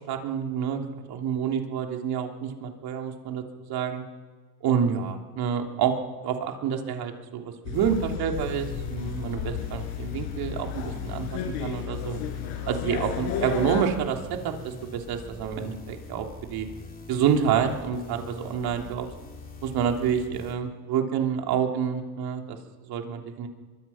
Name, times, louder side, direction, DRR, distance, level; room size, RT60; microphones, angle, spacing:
voice 1, 0.1-0.8 1.1-3.4 3.7-4.0 4.6-5.9 6.2-12.2 12.7-14.2 14.4-16.7 17.1-19.1 19.6-22.6 22.8-23.5, right 8 dB, 50° right, 3 dB, 3.2 m, -28 dB
sound 1, 7.6-13.9, left 9 dB, 65° left, 5.7 m, -33 dB
sound 2, 7.7-20.5, left 2 dB, 20° left, 3.8 m, -44 dB
25.5 x 24.0 x 5.8 m, 1.4 s
hypercardioid pair, 95°, 46 cm